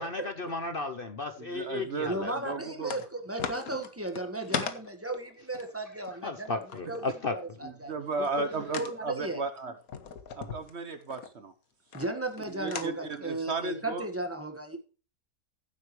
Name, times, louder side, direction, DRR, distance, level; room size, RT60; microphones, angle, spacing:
voice 1, 0.0-2.5 6.2-7.4 7.6-7.7, left 3 dB, 45° left, 7 dB, 0.9 m, -34 dB
voice 2, 1.4-3.0 7.6-9.7 10.3-11.5 12.5-14.1, right 3 dB, 50° right, 9 dB, 1.2 m, -35 dB
voice 3, 2.0-6.6 6.9-7.9 8.2-8.5 8.8-9.4 11.9-14.8, right 2 dB, 10° right, 5 dB, 1.5 m, -35 dB
sound 1, 2.9-3.1 3.4-6.8 8.7-8.9 9.8-11.3 11.9-12.4 12.7-12.9, left 6 dB, 75° left, 1.7 m, -37 dB
15.0 x 8.0 x 3.2 m, 0.37 s
omnidirectional pair, 1.5 m